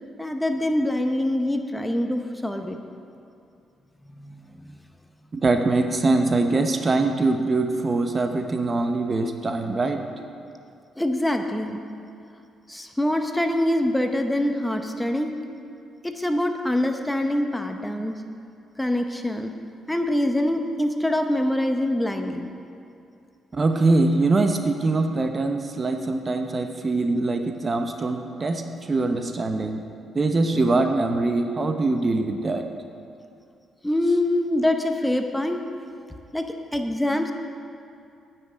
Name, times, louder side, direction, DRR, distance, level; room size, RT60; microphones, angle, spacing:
voice 1, 0.2-2.8 4.1-4.3 4.6-4.7 11.0-11.8 12.7-15.3 16.0-18.1 18.8-19.5 19.9-22.5 33.8-35.6 36.3-37.3, left 1 dB, 5° left, 5 dB, 0.7 m, -24 dB
voice 2, 5.3-10.0 23.5-29.8 30.1-32.7, right 3 dB, 35° right, 6 dB, 0.8 m, -23 dB
9.5 x 5.9 x 8.5 m, 2.6 s
cardioid pair, 90°, 0 cm